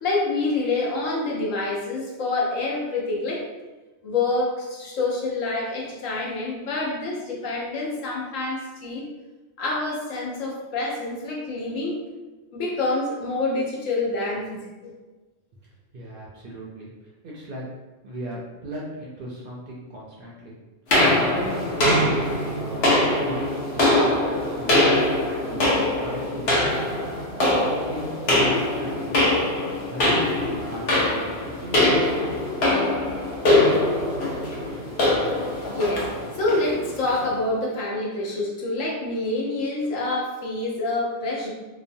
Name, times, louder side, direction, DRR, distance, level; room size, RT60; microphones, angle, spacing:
voice 1, 0.0-3.4 4.0-9.1 9.6-12.0 12.5-14.9 35.6-36.1 36.4-41.5, left 2 dB, 85° left, -3 dB, 1.1 m, -27 dB
voice 2, 15.6-16.9 17.2-17.6 18.0-20.5 21.2-24.7 25.2-25.6 26.0-26.9 27.7-29.2 29.9-31.8, equal, 60° right, -4 dB, 0.6 m, -37 dB
sound 1, 20.9-37.3, left 1 dB, 60° left, 0.9 m, -22 dB
2.9 x 2.0 x 2.6 m, 1.2 s
omnidirectional pair, 1.3 m